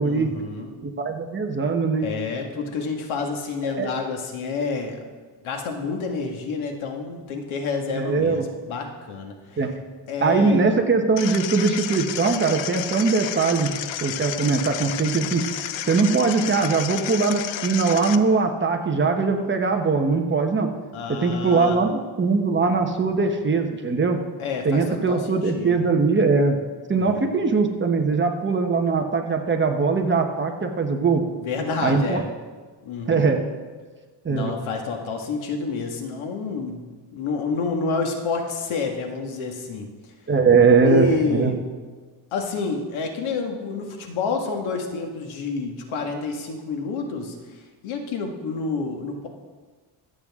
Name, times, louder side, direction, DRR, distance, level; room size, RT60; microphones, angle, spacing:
voice 1, 0.0-0.7 2.0-5.0 5.4-9.6 10.1-10.6 20.9-21.8 24.4-25.8 26.9-27.3 31.3-32.3 32.8-33.3 34.3-36.9 37.1-39.9 40.8-41.6 42.3-47.4 47.8-49.3, left 4 dB, 90° left, 3 dB, 2.0 m, -28 dB
voice 2, 0.8-2.1 3.6-3.9 7.9-8.5 9.6-9.7 10.2-13.7 14.0-20.7 21.1-24.2 24.6-26.6 26.9-31.2 31.8-32.2 33.1-33.4 34.2-34.5 40.3-41.5, right 4 dB, 25° right, 3 dB, 1.1 m, -21 dB
sound 1, 11.2-18.2, left 11 dB, 70° left, 0.7 m, -31 dB
24.0 x 8.1 x 3.7 m, 1.4 s
cardioid pair, 155°, 47 cm